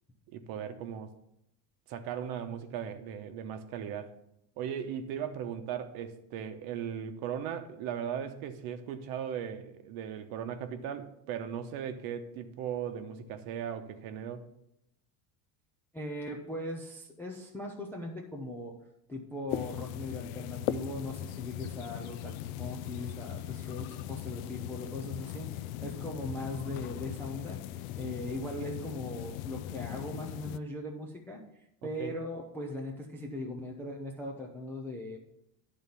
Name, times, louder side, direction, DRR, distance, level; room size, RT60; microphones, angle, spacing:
voice 1, 0.3-1.1 1.9-4.1 4.6-14.5 31.8-32.1, right 8 dB, 50° right, 0.9 m, -38 dB
voice 2, 15.9-18.8 19.1-27.6 28.0-35.2, left 1 dB, 5° left, 0.3 m, -39 dB
sound 1, 19.5-30.6, left 12 dB, 65° left, 0.5 m, -39 dB
11.0 x 3.9 x 6.8 m
cardioid pair, 165°, 45 cm